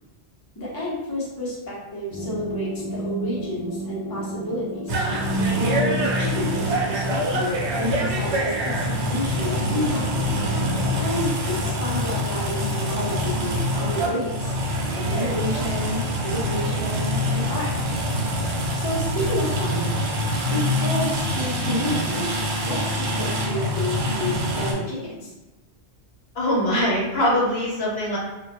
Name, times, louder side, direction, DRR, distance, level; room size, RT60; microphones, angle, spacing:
voice 1, 0.6-5.0 5.5-10.0 11.0-14.6 14.9-17.7 18.7-19.9 20.5-22.3 22.6-25.3, left 1 dB, 25° left, -8 dB, 0.6 m, -30 dB
sound 1, 2.1-11.0, right 1 dB, 25° right, 0.3 m, -30 dB
sound 2, 4.9-24.7, equal, 90° right, 0.9 m, -25 dB
voice 2, 26.3-28.2, left 1 dB, 70° left, -5 dB, 0.9 m, -22 dB
2.1 x 2.0 x 2.8 m, 1.1 s
omnidirectional pair, 1.1 m